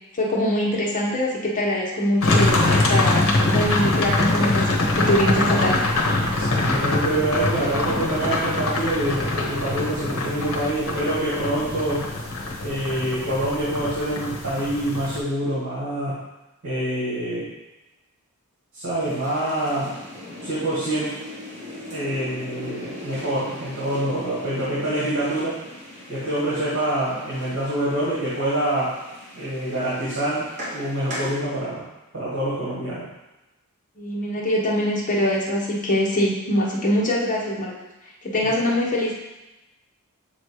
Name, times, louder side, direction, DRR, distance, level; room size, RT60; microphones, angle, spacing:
voice 1, 0.1-5.9 34.0-37.7 38.2-39.1, left 1 dB, 35° left, -4 dB, 1.2 m, -23 dB
sound 1, 2.2-15.2, left 2 dB, 65° left, 1.0 m, -23 dB
voice 2, 6.4-12.1 12.6-16.2 16.6-17.5 18.7-20.0 20.4-21.1 21.9-25.6 26.1-29.0 29.3-30.5 30.7-31.8 32.1-33.0, right 1 dB, 65° right, -10 dB, 2.1 m, -26 dB
sound 2, 19.0-31.4, left 1 dB, 30° right, 1.5 m, -39 dB
6.9 x 3.1 x 4.9 m, 1.0 s
head